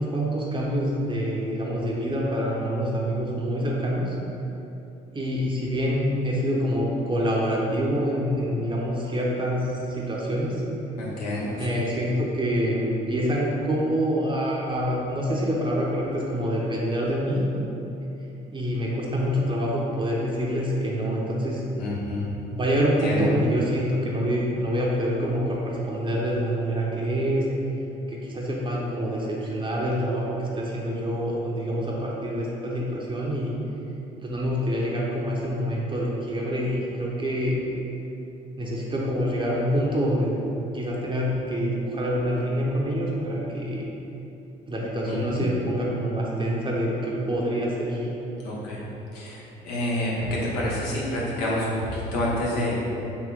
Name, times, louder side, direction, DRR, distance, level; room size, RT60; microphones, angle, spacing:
voice 1, 0.0-4.2 5.1-10.6 11.6-17.6 18.5-21.6 22.5-27.4 28.1-33.6 34.2-37.6 38.6-40.3 40.7-43.8 44.7-48.1, equal, 25° right, -4 dB, 0.6 m, -26 dB
voice 2, 11.0-11.8 21.8-22.3 23.0-23.3 45.1-45.5 48.4-48.9 49.1-52.8, left 1 dB, 90° left, -5 dB, 0.7 m, -28 dB
3.5 x 2.5 x 3.5 m, 2.9 s
hypercardioid pair, 60°, 20 cm